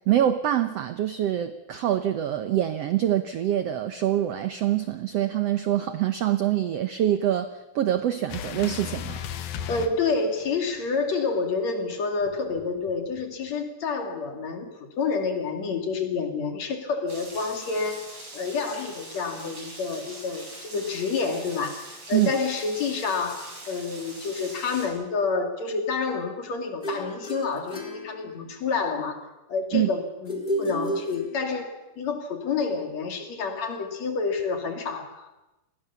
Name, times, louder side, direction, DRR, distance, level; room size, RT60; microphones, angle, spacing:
voice 1, 0.1-9.2 22.1-22.3 29.7-29.9, right 11 dB, 80° right, 10 dB, 1.4 m, -25 dB
sound 1, 8.3-10.8 12.2-13.5, left 9 dB, 75° left, 3.1 m, -36 dB
voice 2, 9.7-18.1 18.3-29.2 29.5-35.3, left 4 dB, 50° left, 5 dB, 3.5 m, -29 dB
Rain, 17.1-24.9, right 1 dB, 35° right, 7.8 m, -43 dB
sound 2, 26.8-28.8 30.3-31.8, equal, 15° left, 3.6 m, -32 dB
28.5 x 21.5 x 7.0 m, 1.0 s
omnidirectional pair, 4.1 m